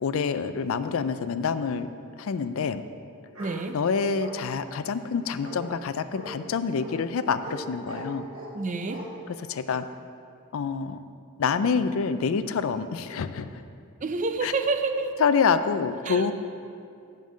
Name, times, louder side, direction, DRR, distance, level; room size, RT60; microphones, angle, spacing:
voice 1, 0.0-1.9 2.2-2.8 3.7-8.3 9.3-9.8 10.5-11.0 11.4-13.5 14.4-14.5 15.2-16.3, left 5 dB, 65° left, 12 dB, 0.4 m, -27 dB
Bark, 3.3-3.6 4.2-4.7 5.4-5.6 6.1-6.3 6.8-6.9 7.4-7.6 7.9-8.5 8.9-9.0, right 2 dB, 65° right, 2.1 m, -41 dB
voice 2, 3.4-3.8 8.5-9.0 14.0-15.1 16.1-16.3, right 3 dB, 35° right, 8 dB, 0.5 m, -28 dB
9.3 x 5.3 x 6.3 m, 2.5 s
head